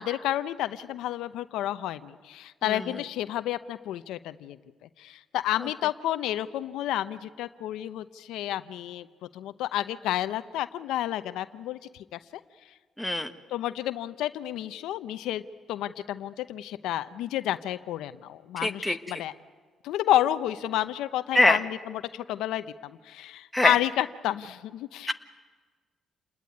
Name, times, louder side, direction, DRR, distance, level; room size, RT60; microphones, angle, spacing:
voice 1, 0.0-4.6 5.0-9.1 9.3-12.2 13.5-15.4 15.7-19.3 19.8-25.1, left 13 dB, 90° left, 12 dB, 0.8 m, -30 dB
voice 2, 13.0-13.3 18.6-19.0 21.3-21.6 23.5-23.7 25.1-25.2, left 1 dB, 5° left, 6 dB, 1.6 m, -22 dB
28.5 x 20.5 x 9.5 m, 1.4 s
cardioid pair, 90°, 0 cm